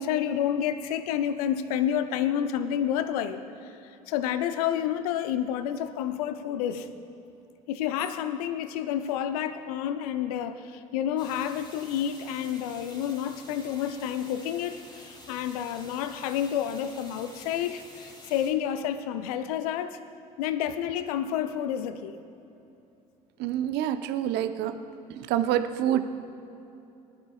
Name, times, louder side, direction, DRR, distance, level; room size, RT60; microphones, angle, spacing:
voice 1, 0.0-6.9 7.7-20.0 20.4-22.2, left 9 dB, 70° left, 10 dB, 0.7 m, -29 dB
sound 1, 11.2-18.5, left 1 dB, 25° left, 3.4 m, -49 dB
voice 2, 23.4-24.8 25.1-26.0, right 11 dB, 60° right, 9 dB, 0.9 m, -27 dB
23.5 x 12.5 x 2.4 m, 2.8 s
figure-of-eight pair, 60°, 20 cm